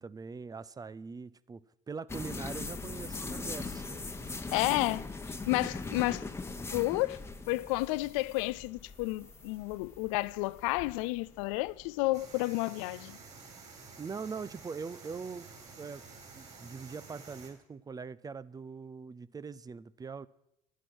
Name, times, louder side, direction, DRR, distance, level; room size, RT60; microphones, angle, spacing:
voice 1, 0.0-4.4 14.0-15.5 15.8-16.0 16.3-20.3, right 5 dB, 20° right, 0.6 m, -42 dB
sound 1, 2.1-12.2, left 3 dB, 15° left, 1.1 m, -41 dB
sound 2, 3.4-12.6, left 8 dB, 55° left, 1.5 m, -58 dB
voice 2, 4.5-5.1 5.5-6.2 6.7-7.2 7.5-13.2, left 20 dB, 80° left, 0.4 m, -31 dB
sound 3, 12.1-17.5, right 4 dB, 45° right, 5.4 m, -51 dB
11.5 x 11.0 x 6.2 m
hypercardioid pair, 80°, 17 cm